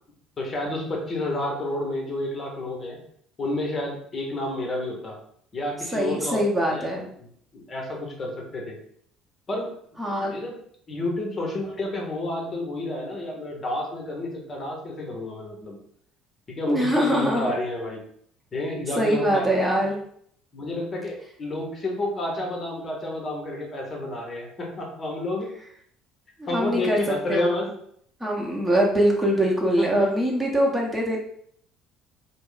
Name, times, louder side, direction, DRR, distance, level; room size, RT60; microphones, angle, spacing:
voice 1, 0.4-3.0 3.4-5.2 5.5-6.9 7.2-8.8 9.5-9.7 10.0-10.6 10.9-15.8 16.5-18.0 18.5-19.5 20.5-25.5 26.5-27.7 29.8-30.1, left 1 dB, 35° left, -1 dB, 0.9 m, -30 dB
voice 2, 5.9-7.1 10.0-10.3 16.7-17.5 19.0-20.0 26.4-27.0 27.3-27.5 28.2-31.2, equal, 15° right, -2 dB, 0.8 m, -23 dB
2.3 x 2.0 x 3.8 m, 0.64 s
hypercardioid pair, 60°, 0 cm